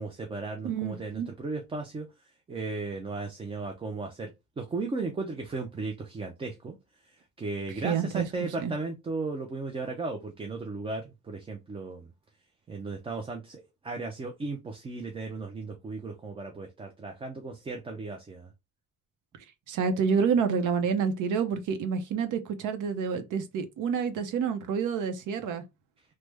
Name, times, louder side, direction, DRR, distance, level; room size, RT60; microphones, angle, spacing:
voice 1, 0.0-2.1 2.5-6.7 7.0-12.1 12.7-18.5, right 3 dB, 20° right, 0.3 m, -36 dB
voice 2, 0.6-1.3 7.7-8.3 8.6-8.7 19.7-25.6, right 6 dB, 80° right, 0.7 m, -28 dB
3.2 x 2.0 x 3.2 m
cardioid pair, 165°, 31 cm